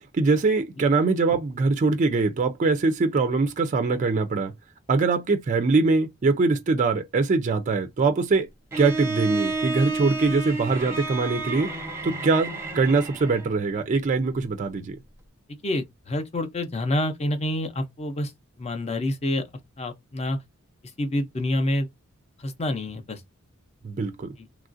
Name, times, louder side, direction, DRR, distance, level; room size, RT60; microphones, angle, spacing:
voice 1, 0.1-4.5 4.9-8.5 8.8-11.7 12.0-15.0 23.8-24.3, right 3 dB, 35° right, 0.3 m, -23 dB
Bowed string instrument, 8.7-13.6, right 3 dB, 10° right, 0.7 m, -31 dB
voice 2, 15.5-18.3 18.6-19.5 19.8-20.4 21.0-21.9 22.4-23.2 24.4-24.5, left 1 dB, 30° left, 0.6 m, -27 dB
3.0 x 2.4 x 2.4 m
head